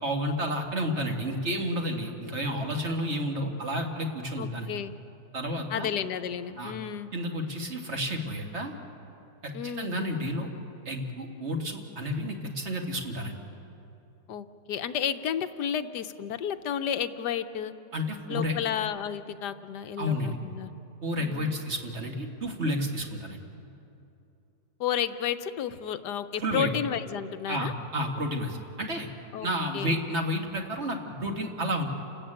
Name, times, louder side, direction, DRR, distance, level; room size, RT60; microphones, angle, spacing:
voice 1, 0.0-4.7 5.3-5.9 6.6-6.7 7.1-8.7 9.4-10.5 10.9-13.4 17.9-18.5 20.0-20.4 21.0-23.4 26.4-26.7 27.5-29.1 29.4-31.8, equal, 40° right, 3 dB, 2.1 m, -31 dB
voice 2, 4.4-4.9 5.7-7.1 9.5-10.0 14.3-17.7 18.3-20.7 21.2-21.6 24.8-27.7 29.3-29.5 29.7-30.0, left 9 dB, 90° left, 10 dB, 1.4 m, -32 dB
29.5 x 13.5 x 8.9 m, 2.7 s
omnidirectional pair, 1.7 m